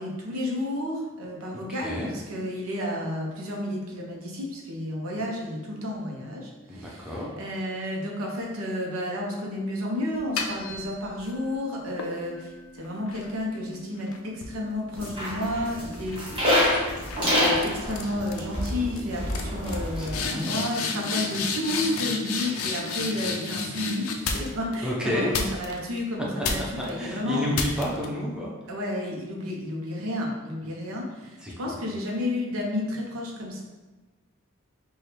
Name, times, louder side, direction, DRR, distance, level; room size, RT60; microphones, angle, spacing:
voice 1, 0.0-16.2 17.2-27.4 28.7-33.6, left 1 dB, 85° right, -1 dB, 0.8 m, -31 dB
voice 2, 6.7-7.3 20.0-20.6 24.8-25.4 27.0-28.5 31.4-31.7, left 1 dB, 5° right, -5 dB, 0.6 m, -30 dB
sound 1, 10.1-11.4 12.0-15.6 15.9-16.3 17.1-17.3 17.6-18.0 18.3-18.7 19.0-19.1 19.3-24.7 25.3-26.0 26.4-26.9 27.5-28.1, left 4 dB, 85° left, 0.5 m, -32 dB
sound 2, 14.9-20.3, left 1 dB, 25° right, 1.0 m, -27 dB
4.4 x 2.3 x 3.3 m, 1.2 s
head